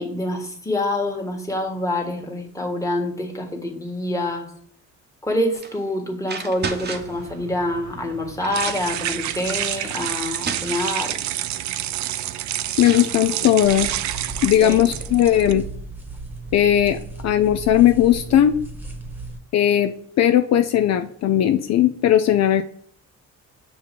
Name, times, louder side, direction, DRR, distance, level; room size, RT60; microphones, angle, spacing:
voice 1, 0.0-4.5 5.2-11.2 14.6-14.8, left 1 dB, 10° left, 1 dB, 1.5 m, -26 dB
sound 1, 5.5-5.8 6.2-7.2 8.0-8.1 8.4-9.0 9.8-9.9 10.3-10.9 12.3-12.4 12.7-13.1, right 4 dB, 35° right, 0.8 m, -33 dB
sound 2, 6.9-15.5, right 12 dB, 70° right, 0.5 m, -29 dB
voice 2, 12.8-14.0 14.4-15.6 16.5-17.0 17.2-18.6 19.5-22.6, left 11 dB, 60° left, 8 dB, 0.5 m, -17 dB
sound 3, 13.6-19.4, right 3 dB, 5° right, 1.3 m, -35 dB
6.9 x 2.8 x 5.1 m, 0.62 s
cardioid pair, 90°, 30 cm